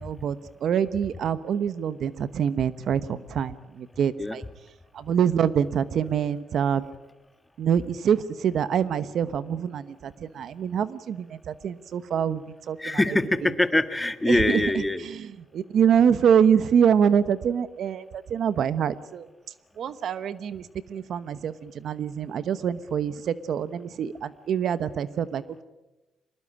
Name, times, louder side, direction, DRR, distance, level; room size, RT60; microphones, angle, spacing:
voice 1, 0.0-4.4 4.9-6.8 7.6-12.8 14.3-14.6 15.5-19.3 19.8-25.4, right 8 dB, 65° right, 15 dB, 1.1 m, -25 dB
voice 2, 12.8-15.1, left 1 dB, 15° left, 11 dB, 1.5 m, -23 dB
23.5 x 20.5 x 8.8 m, 1.0 s
cardioid pair, 90°, 0 cm